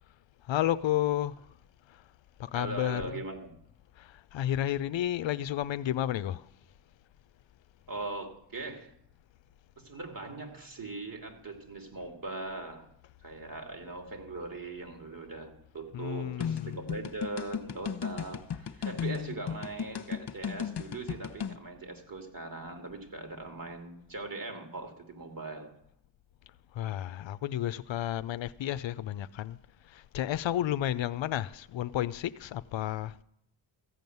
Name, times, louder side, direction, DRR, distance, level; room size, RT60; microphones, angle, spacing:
voice 1, 0.4-1.5 1.9-2.0 2.4-3.2 4.0-6.5 15.9-16.8 26.7-29.6 29.8-33.2, left 12 dB, 70° left, 0.6 m, -32 dB
voice 2, 2.5-3.5 7.9-8.9 9.8-12.9 13.2-25.7, right 3 dB, 45° right, 2.9 m, -40 dB
sound 1, 16.4-21.6, left 8 dB, 55° left, 1.1 m, -35 dB
14.5 x 5.3 x 9.3 m
supercardioid pair, 45°, 48 cm